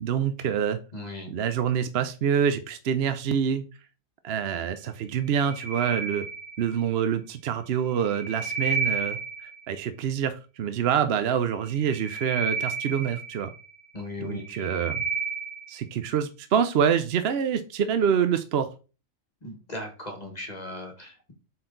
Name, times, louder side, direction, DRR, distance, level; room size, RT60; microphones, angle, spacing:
voice 1, 0.0-0.8 1.3-3.6 4.2-6.3 6.6-13.5 14.2-15.0 15.7-18.7, right 8 dB, 60° right, 9 dB, 0.8 m, -26 dB
voice 2, 0.9-1.3 13.9-14.7 19.4-21.3, left 2 dB, 30° left, 2 dB, 1.8 m, -38 dB
sound 1, 5.2-6.9 7.9-9.7 11.7-13.8 14.3-15.8, right 4 dB, 55° left, 1.4 m, -32 dB
8.0 x 4.4 x 3.9 m, 0.34 s
omnidirectional pair, 1.4 m